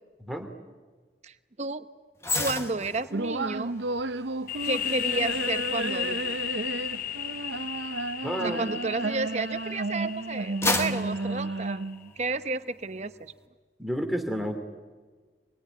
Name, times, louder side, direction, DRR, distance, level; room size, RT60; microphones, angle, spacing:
voice 1, 1.2-1.9 2.3-3.7 4.6-6.2 8.4-11.8 12.2-13.3, right 3 dB, 40° right, 11 dB, 0.9 m, -32 dB
sound 1, 2.2-9.6 10.1-12.4 12.8-13.0, left 2 dB, 15° left, 1.5 m, -35 dB
sound 2, 3.1-12.1, right 2 dB, 80° right, 0.7 m, -32 dB
sound 3, 4.5-11.9, left 10 dB, 50° left, 0.7 m, -35 dB
voice 2, 8.2-8.6 13.8-14.6, equal, ahead, 4 dB, 2.6 m, -30 dB
26.5 x 22.5 x 9.5 m, 1.4 s
head